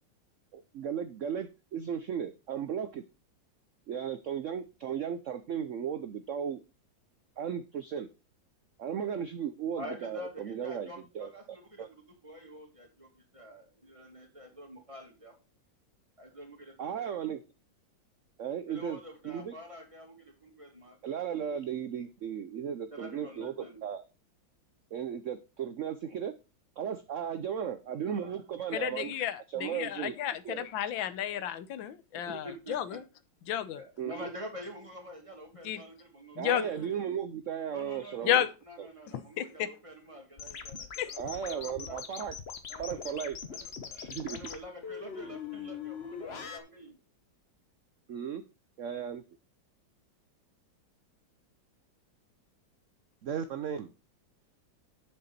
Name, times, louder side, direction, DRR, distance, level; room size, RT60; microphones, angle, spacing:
voice 1, 0.5-3.0 3.9-6.6 7.4-8.1 8.8-10.9 11.1-11.9 16.8-17.4 18.4-19.0 19.2-19.5 21.0-23.5 23.8-24.0 24.9-26.4 26.8-29.1 29.5-30.1 30.4-30.7 32.3-32.4 34.0-34.1 36.4-38.5 38.8-38.9 41.2-42.4 42.8-43.4 44.0-44.5 48.1-48.4 48.8-49.2 53.2-53.9, right 8 dB, 75° right, 11 dB, 0.7 m, -35 dB
voice 2, 9.8-15.4 16.2-17.1 18.7-21.0 21.3-21.5 22.8-23.9 27.8-28.3 32.3-33.0 33.7-36.4 36.7-36.8 37.7-42.0 42.7-47.0, equal, 15° right, 2 dB, 2.4 m, -47 dB
voice 3, 28.7-33.0 33.5-33.8 35.6-35.8 36.4-36.6 38.2-38.5 39.4-39.7 41.0-41.1, left 11 dB, 90° left, 14 dB, 1.6 m, -32 dB
sound 1, 40.4-46.6, left 6 dB, 40° left, 1.0 m, -41 dB
8.0 x 6.9 x 4.2 m, 0.29 s
omnidirectional pair, 2.1 m